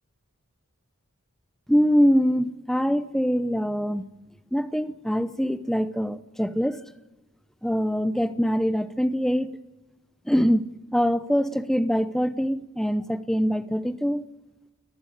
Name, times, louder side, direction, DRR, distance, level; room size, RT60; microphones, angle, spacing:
voice 1, 1.7-4.0 4.5-6.8 7.6-9.6 10.3-14.2, equal, ahead, 0.7 m, -24 dB
29.5 x 15.0 x 9.9 m
head